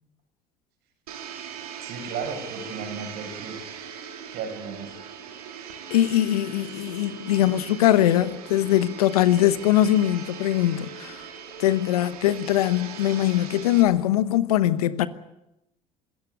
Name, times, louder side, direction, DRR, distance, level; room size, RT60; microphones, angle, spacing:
Domestic sounds home sounds, 1.1-13.8, right 7 dB, 90° right, 2.6 m, -40 dB
voice 1, 1.8-3.6 4.3-5.0, right 5 dB, 65° right, 7.0 m, -34 dB
voice 2, 5.9-11.2 11.6-15.1, left 13 dB, 85° left, 1.0 m, -21 dB
26.5 x 14.0 x 9.6 m
hypercardioid pair, 70°, 19 cm